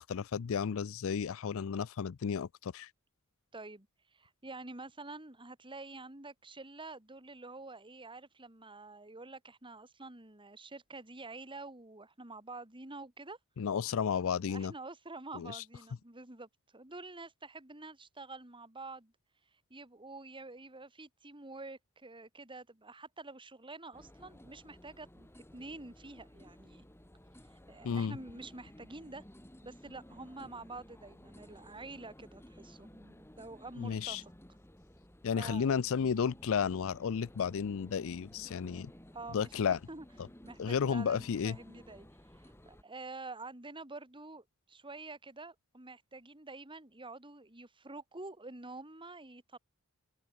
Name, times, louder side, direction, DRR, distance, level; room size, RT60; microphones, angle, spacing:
voice 1, 0.0-2.9 13.6-14.7 15.3-15.6 27.8-28.2 33.8-34.2 35.2-38.9 39.3-39.8 40.6-41.6, left 6 dB, 65° left, 0.4 m, -33 dB
voice 2, 3.5-3.9 4.1-13.4 14.5-19.1 19.7-26.8 27.5-29.2 29.6-34.3 35.4-35.7 39.1-40.1 40.4-42.1 42.3-49.6, right 3 dB, 25° right, 2.9 m, -48 dB
sound 1, 23.9-42.8, equal, 10° left, 3.1 m, -55 dB
open air
head